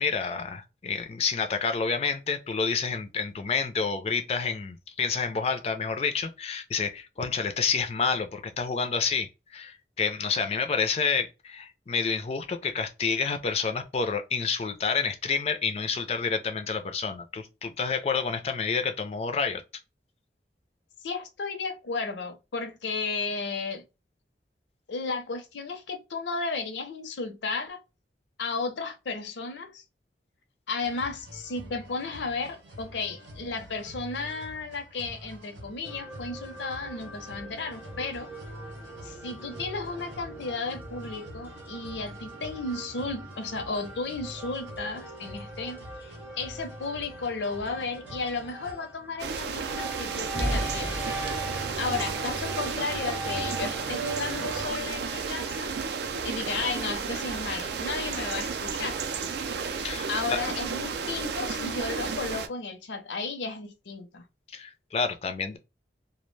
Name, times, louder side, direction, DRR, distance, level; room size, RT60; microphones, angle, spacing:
voice 1, 0.0-19.6 59.8-60.4 64.5-65.6, left 5 dB, 35° left, 0.3 m, -29 dB
voice 2, 21.0-23.8 24.9-27.8 28.4-29.8 30.7-38.3 39.0-51.0 51.8-55.7 56.2-59.0 60.1-64.2, left 4 dB, 80° left, 0.6 m, -34 dB
sound 1, 30.8-48.7, equal, 85° right, 0.8 m, -46 dB
sound 2, 35.8-54.7, right 1 dB, 10° right, 0.6 m, -39 dB
sound 3, 49.2-62.5, right 5 dB, 70° right, 0.4 m, -33 dB
2.3 x 2.1 x 3.1 m
head